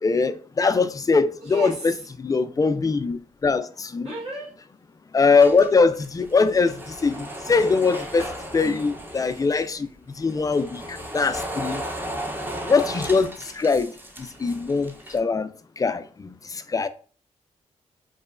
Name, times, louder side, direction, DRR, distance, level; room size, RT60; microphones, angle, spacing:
voice 1, 0.0-1.9 2.2-4.1 5.1-9.9 10.2-11.8 12.6-13.9 14.2-15.5 15.8-16.9, left 4 dB, 25° left, 0.3 m, -22 dB
voice 2, 1.4-2.0 4.0-4.5 8.6-8.9, right 2 dB, 45° right, 1.3 m, -33 dB
sound 1, 5.4-9.7 10.2-15.2, right 1 dB, 15° right, 0.6 m, -35 dB
3.0 x 2.1 x 2.4 m
supercardioid pair, 45°, 15 cm